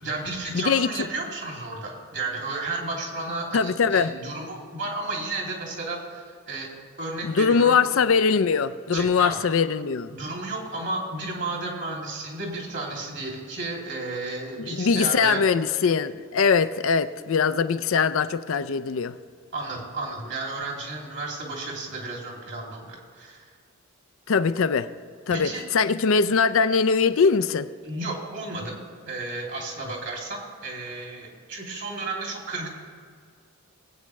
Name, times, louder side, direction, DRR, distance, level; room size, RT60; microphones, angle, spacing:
voice 1, 0.0-6.7 7.0-7.8 8.9-9.4 10.1-15.4 19.5-23.5 25.3-25.6 27.8-28.8 29.1-32.7, right 2 dB, 55° right, 2.8 m, -33 dB
voice 2, 0.5-0.9 3.5-4.1 7.2-10.1 14.6-19.1 24.3-24.9 25.3-27.7, left 5 dB, 65° left, 0.4 m, -22 dB
20.0 x 8.8 x 3.2 m
head